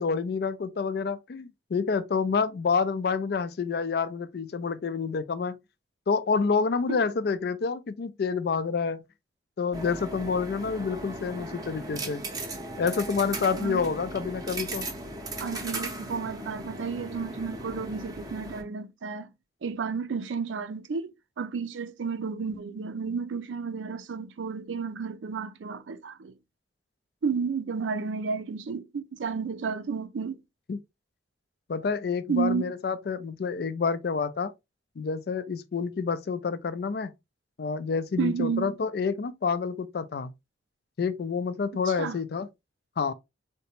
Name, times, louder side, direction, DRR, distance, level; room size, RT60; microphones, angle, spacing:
voice 1, 0.0-5.6 6.1-9.0 9.6-12.2 12.8-14.9 30.7-30.8 31.7-34.5 35.0-37.1 37.6-40.3 41.0-42.5 43.0-43.1, left 5 dB, 55° left, 0.4 m, -28 dB
sound 1, 9.7-18.6, right 2 dB, 20° right, 0.6 m, -37 dB
voice 2, 15.4-19.3 19.6-26.3 27.2-30.4 32.3-32.7 38.2-38.7 41.9-42.2, right 5 dB, 90° right, 0.4 m, -32 dB
3.8 x 2.1 x 2.9 m
head